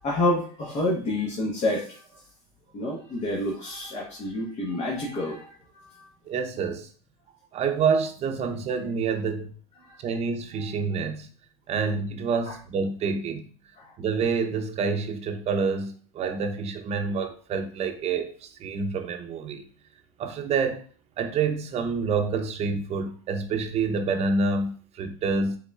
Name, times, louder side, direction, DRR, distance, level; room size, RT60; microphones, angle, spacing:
voice 1, 0.0-1.9 2.7-5.5 5.9-6.0, left 1 dB, 45° left, 1.2 m, -28 dB
voice 2, 6.3-6.9 7.5-9.5 10.0-11.3 11.7-13.4 14.0-19.6 20.2-20.8 21.2-25.6, right 5 dB, 45° right, 0.7 m, -27 dB
5.3 x 3.5 x 2.4 m
supercardioid pair, 100°, 15 cm